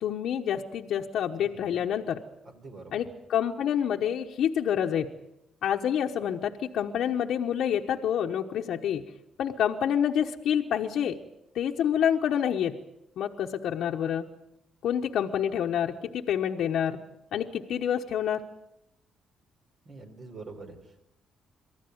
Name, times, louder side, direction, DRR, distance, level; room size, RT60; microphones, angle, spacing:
voice 1, 0.0-2.2 2.9-5.1 5.6-9.0 9.4-11.2 11.5-12.8 13.2-14.2 14.8-17.0 17.3-18.5, left 9 dB, 75° left, 1 dB, 1.1 m, -28 dB
voice 2, 1.4-1.8 2.4-3.0 19.8-21.0, right 3 dB, 50° right, 5 dB, 4.5 m, -45 dB
23.5 x 14.5 x 9.5 m, 0.85 s
cardioid pair, 90°, 0 cm